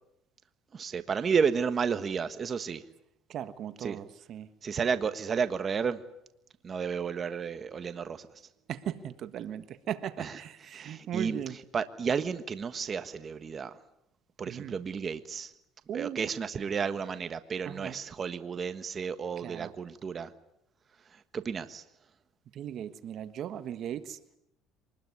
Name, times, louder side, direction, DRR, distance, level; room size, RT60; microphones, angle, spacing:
voice 1, 0.7-2.8 3.8-4.0 4.6-6.0 6.6-8.3 10.2-10.4 10.7-11.4 11.7-13.8 14.4-15.5 15.9-20.3 21.1-21.8, right 6 dB, 35° right, 11 dB, 1.4 m, -32 dB
voice 2, 3.3-4.5 8.7-11.6 14.5-14.7 15.9-16.3 17.6-17.9 19.4-19.7 22.5-24.2, right 10 dB, 55° right, 12 dB, 1.4 m, -38 dB
24.5 x 20.5 x 9.7 m, 0.81 s
supercardioid pair, 95°, 0 cm